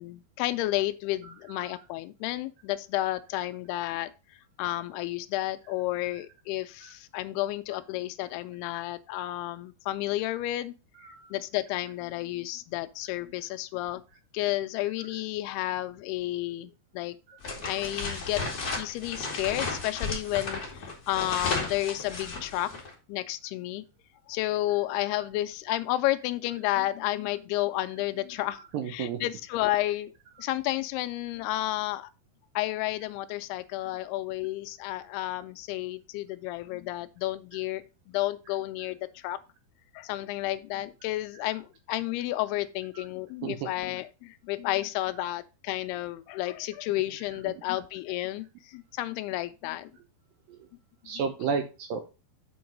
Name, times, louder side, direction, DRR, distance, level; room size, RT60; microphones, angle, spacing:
voice 1, 0.0-4.1 4.6-10.7 11.3-14.0 14.3-17.2 17.6-18.4 18.8-22.7 23.1-23.9 24.3-30.1 30.4-32.1 32.6-39.4 39.9-49.9 51.1-51.5, left 16 dB, 85° left, 2.4 m, -31 dB
voice 2, 1.2-1.8 6.8-6.9 11.0-11.3 17.3-17.4 22.2-22.3 28.7-29.2 42.9-43.0 43.4-43.7 50.5-50.7 51.1-52.1, right 6 dB, 75° right, 2.2 m, -33 dB
sound 1, 17.4-22.9, left 3 dB, 30° left, 1.8 m, -34 dB
7.8 x 4.6 x 5.1 m
omnidirectional pair, 4.7 m